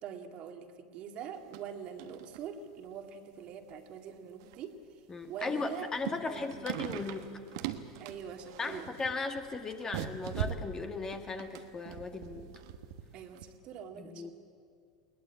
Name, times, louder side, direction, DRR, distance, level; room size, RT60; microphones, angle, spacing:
voice 1, 0.0-5.9 6.3-6.8 8.0-8.9 13.1-14.3, right 7 dB, 50° right, 5 dB, 2.0 m, -44 dB
sound 1, 1.3-1.7 2.0-2.4 2.8-2.9 3.7-3.8 4.4-4.7 5.2-13.0 13.3-13.4, right 10 dB, 65° right, 1.3 m, -41 dB
voice 2, 5.1-7.3 8.6-12.5 13.9-14.3, left 3 dB, 25° left, 6 dB, 1.9 m, -37 dB
21.0 x 19.0 x 8.4 m, 2.2 s
hypercardioid pair, 90°, 2 cm